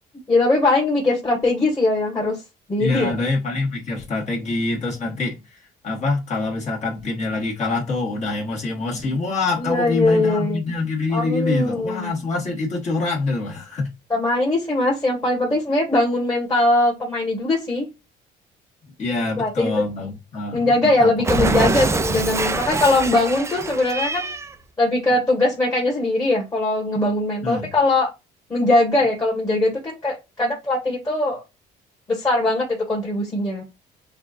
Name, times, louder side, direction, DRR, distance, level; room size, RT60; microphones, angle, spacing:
voice 1, 0.3-2.4 2.7-3.2 9.6-10.6 11.1-12.1 14.1-17.9 19.4-19.7 20.5-24.3 24.8-28.1 28.5-31.4 32.1-33.6, left 2 dB, 20° left, 1.5 m, -21 dB
voice 2, 2.8-5.6 5.8-13.9 19.0-20.7 21.0-21.7 27.4-27.7, left 3 dB, 45° left, 1.5 m, -25 dB
Cat, 21.2-24.5, right 4 dB, 15° right, 0.4 m, -24 dB
5.7 x 2.5 x 2.5 m
cardioid pair, 110°, 17 cm